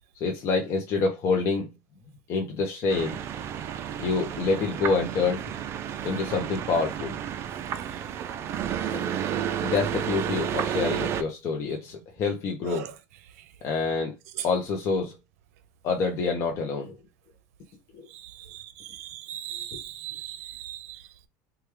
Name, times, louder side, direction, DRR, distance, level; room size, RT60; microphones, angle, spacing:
voice 1, 0.2-1.7 2.3-3.2 4.0-5.4 6.0-7.2 8.9-9.0 9.6-12.9 13.6-14.1 14.4-15.1 15.8-16.9 17.9-18.0, left 4 dB, 35° left, 0.6 m, -27 dB
sound 1, 2.9-11.2, right 9 dB, 35° right, 0.3 m, -31 dB
voice 2, 18.1-21.0, right 11 dB, 90° right, 0.5 m, -38 dB
3.1 x 2.3 x 3.3 m
cardioid pair, 155°, 8 cm